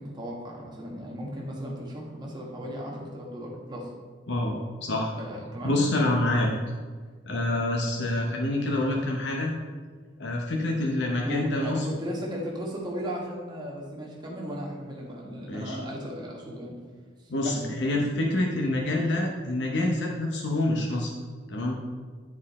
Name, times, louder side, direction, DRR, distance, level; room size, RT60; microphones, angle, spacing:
voice 1, 0.0-3.9 5.1-5.8 8.7-9.0 11.2-16.7 17.2-18.0, equal, 25° right, -3 dB, 1.6 m, -36 dB
voice 2, 4.3-5.1 5.6-6.5 7.3-9.5 10.2-11.8 15.5-15.8 17.3-21.1 21.5-21.8, left 1 dB, 65° left, -1 dB, 0.9 m, -27 dB
9.7 x 4.4 x 4.2 m, 1.5 s
head